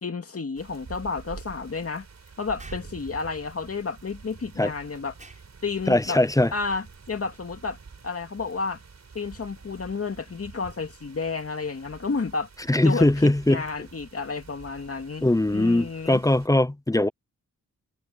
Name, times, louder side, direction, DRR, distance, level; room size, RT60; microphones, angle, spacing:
voice 1, 0.0-2.1 2.4-5.1 5.6-6.2 6.5-7.8 8.0-8.8 9.1-12.5 12.8-16.2, left 4 dB, 45° left, 2.4 m, -31 dB
sound 1, 0.6-16.5, right 5 dB, 55° right, 4.5 m, -47 dB
Explosion, 2.6-2.9 5.2-5.5, right 2 dB, 25° right, 6.9 m, -48 dB
voice 2, 5.9-6.5 12.7-13.6 15.2-17.1, left 1 dB, 10° left, 0.7 m, -21 dB
wide cardioid pair, 120°, 32 cm